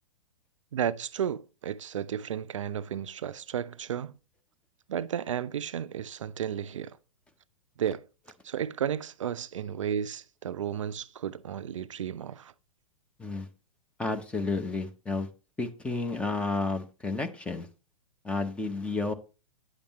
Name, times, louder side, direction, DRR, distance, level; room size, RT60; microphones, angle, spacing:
voice 1, 0.7-4.1 4.9-7.0 7.8-8.1 8.4-12.5, right 9 dB, 60° right, 0.4 m, -33 dB
voice 2, 14.0-15.3 15.6-17.7 18.2-19.1, left 3 dB, 5° left, 0.7 m, -31 dB
9.3 x 6.9 x 2.9 m
figure-of-eight pair, 105°, 18 cm